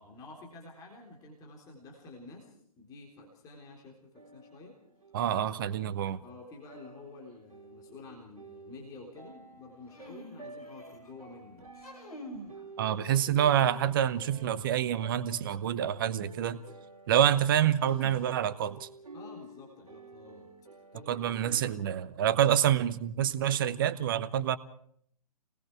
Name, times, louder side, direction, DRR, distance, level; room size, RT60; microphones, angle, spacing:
voice 1, 0.0-4.8 6.2-11.7 19.1-20.5 20.9-21.6, left 3 dB, 15° left, -1 dB, 3.6 m, -50 dB
sound 1, 4.1-21.7, right 3 dB, 65° right, 3.1 m, -51 dB
voice 2, 5.1-6.2 12.8-16.6 17.1-18.9 21.1-24.6, right 10 dB, 35° right, 15 dB, 0.9 m, -27 dB
sound 2, 9.9-11.1 11.7-12.6 13.0-13.9 15.9-16.0 17.8-18.7, equal, 70° left, 5.8 m, -47 dB
28.0 x 20.0 x 4.7 m, 0.64 s
figure-of-eight pair, 125°, 20 cm